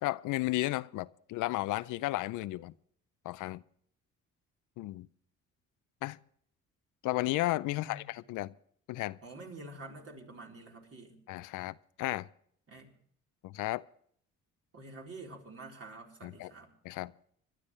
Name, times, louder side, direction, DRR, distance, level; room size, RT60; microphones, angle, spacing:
voice 1, 0.0-2.7 3.2-3.6 4.8-5.1 6.0-6.2 7.0-8.5 8.9-9.2 11.3-12.3 13.4-13.8 16.2-16.5 16.8-17.1, left 17 dB, 90° left, 0.5 m, -33 dB
voice 2, 7.8-8.1 9.2-11.2 12.7-12.9 14.7-16.7, right 2 dB, 50° right, 4.1 m, -48 dB
25.5 x 12.0 x 3.2 m
cardioid pair, 90°, 30 cm